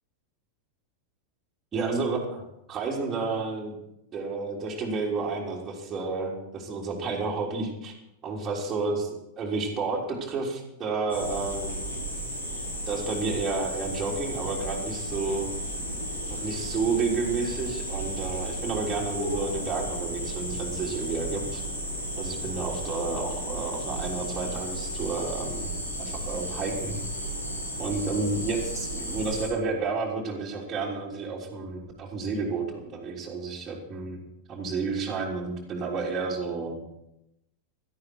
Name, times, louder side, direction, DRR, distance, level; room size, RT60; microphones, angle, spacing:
voice 1, 1.7-3.8 4.1-7.9 8.2-11.9 12.9-15.5 16.3-21.6 22.2-25.7 26.0-27.0 27.8-34.2 34.5-36.8, right 4 dB, 20° right, -5 dB, 3.5 m, -31 dB
sound 1, 11.1-29.5, equal, 70° left, 6.5 m, -33 dB
17.0 x 13.0 x 4.7 m, 0.85 s
figure-of-eight pair, 90°, 0 cm